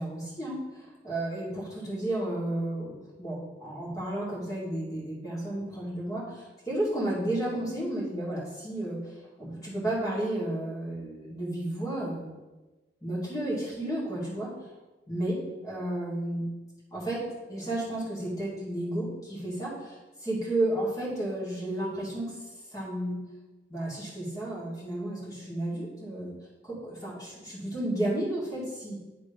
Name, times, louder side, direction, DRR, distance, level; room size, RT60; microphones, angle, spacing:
voice 1, 0.0-12.2 13.0-14.5 15.1-16.5 16.9-17.2 17.5-22.3 22.7-23.2 23.7-26.3 26.6-29.0, right 1 dB, 20° left, -6 dB, 2.3 m, -32 dB
9.7 x 3.8 x 5.2 m, 1.1 s
head